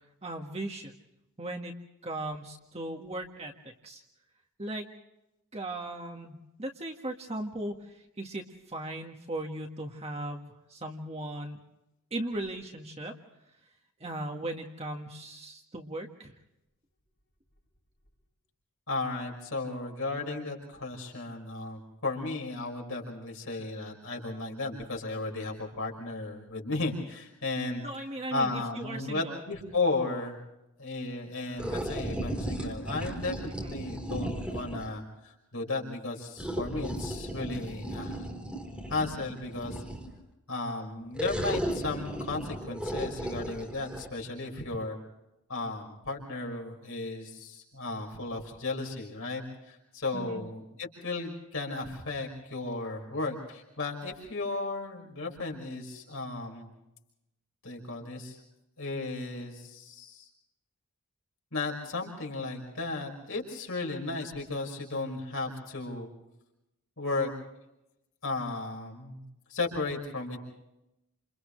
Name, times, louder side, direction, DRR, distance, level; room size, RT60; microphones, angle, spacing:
voice 1, 0.2-0.9 1.4-1.7 2.0-4.0 4.6-4.9 5.5-11.6 12.1-13.1 14.0-16.4 27.8-29.4 33.5-33.8 50.1-50.4, right 1 dB, 30° right, 2 dB, 1.8 m, -38 dB
voice 2, 18.9-27.8 28.3-30.4 30.8-38.2 38.9-39.8 40.5-45.0 45.5-56.7 57.6-58.4 58.8-60.3 61.5-66.1 67.0-67.3 68.2-69.2 69.5-70.4, left 3 dB, 65° left, 0 dB, 5.6 m, -35 dB
sound 1, 31.6-34.9 36.4-40.2 41.1-44.1, right 1 dB, 5° right, 4.3 m, -35 dB
30.0 x 28.5 x 3.3 m, 0.90 s
head